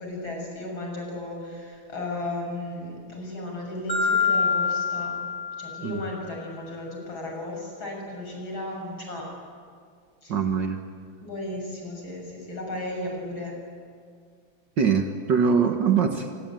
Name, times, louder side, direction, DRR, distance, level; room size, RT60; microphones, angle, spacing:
voice 1, 0.0-5.2 5.6-9.3 10.2-10.4 11.2-13.6, left 2 dB, 75° left, 0 dB, 8.2 m, -35 dB
Marimba xylophone, 3.9-6.1, left 5 dB, 30° left, 4.3 m, -25 dB
voice 2, 10.3-10.8 14.8-16.3, right 6 dB, 60° right, 4 dB, 2.0 m, -23 dB
26.5 x 22.0 x 9.1 m, 2.1 s
omnidirectional pair, 2.2 m